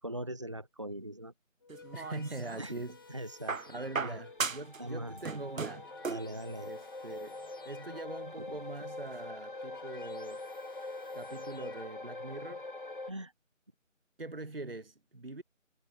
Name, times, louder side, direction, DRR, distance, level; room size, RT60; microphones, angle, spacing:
voice 1, 0.0-1.3 2.6-4.2 4.8-5.2 6.1-6.7 13.1-13.3, right 1 dB, 25° right, 1.6 m, -41 dB
sound 1, 1.6-4.6 5.3-8.5 9.3-11.8, left 4 dB, 15° left, 4.4 m, -54 dB
sound 2, 1.7-2.7 3.5-4.8 5.1-6.3 7.4-7.5, right 5 dB, 80° right, 0.9 m, -37 dB
voice 2, 1.9-3.0 3.7-5.9 6.6-10.4 11.1-12.6 14.2-15.4, right 2 dB, 45° right, 2.3 m, -43 dB
sound 3, 2.7-13.1, left 2 dB, 40° left, 2.3 m, -45 dB
figure-of-eight pair, 170°, 39 cm